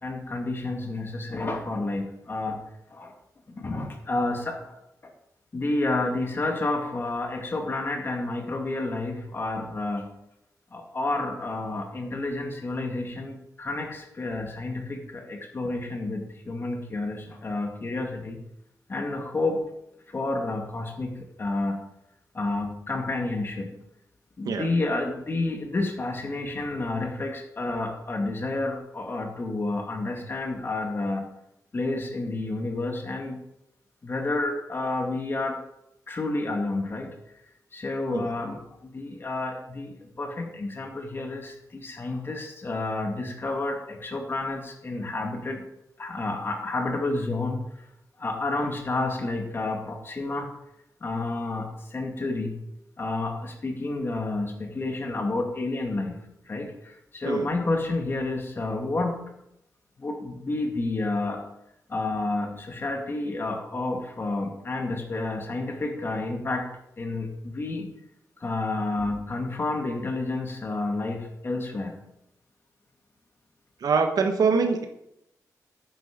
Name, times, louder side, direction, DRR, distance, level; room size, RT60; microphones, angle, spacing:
voice 1, 0.0-2.6 2.9-3.1 3.5-5.1 5.5-10.1 10.7-18.4 18.9-19.6 20.1-21.8 22.3-23.7 24.4-31.3 31.7-33.4 34.0-35.6 36.1-37.2 37.7-45.6 46.0-47.9 48.2-50.5 51.0-52.6 53.0-59.2 60.0-61.5 61.9-66.7 67.0-67.9 68.4-72.0, left 2 dB, 35° left, 3 dB, 2.2 m, -30 dB
voice 2, 73.8-74.9, right 5 dB, 85° right, 6 dB, 1.3 m, -24 dB
11.0 x 9.4 x 5.2 m, 0.81 s
wide cardioid pair, 145°, 6 cm